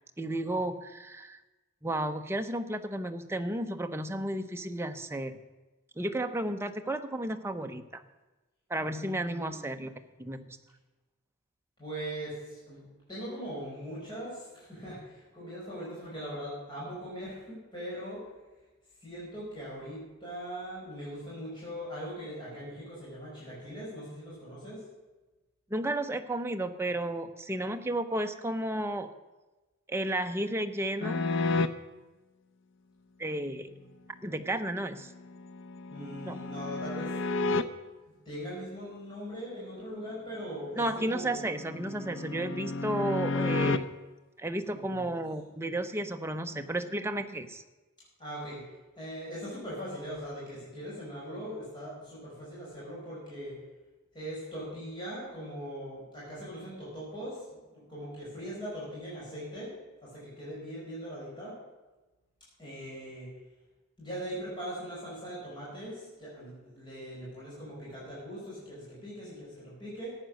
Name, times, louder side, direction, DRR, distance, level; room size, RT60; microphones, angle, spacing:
voice 1, 0.2-1.4 1.8-5.4 6.0-8.0 8.7-9.9 10.2-10.4 25.7-29.1 29.9-31.3 33.2-33.7 34.2-35.1 36.2-36.4 40.7-44.0 44.4-47.6, right 1 dB, 15° right, 6 dB, 0.7 m, -33 dB
voice 2, 8.9-9.9 10.2-10.6 11.8-12.8 13.1-18.2 19.0-24.8 33.5-33.7 35.9-37.1 37.8-37.9 38.3-41.3 44.7-45.2 48.2-48.6 49.0-53.6 54.1-59.7 60.0-61.5 62.6-63.3 64.0-70.2, equal, 25° left, -8 dB, 5.3 m, -41 dB
sound 1, 31.0-31.7 35.1-37.6 40.7-43.8, left 3 dB, 65° left, 0.6 m, -31 dB
14.0 x 9.1 x 6.4 m, 1.1 s
head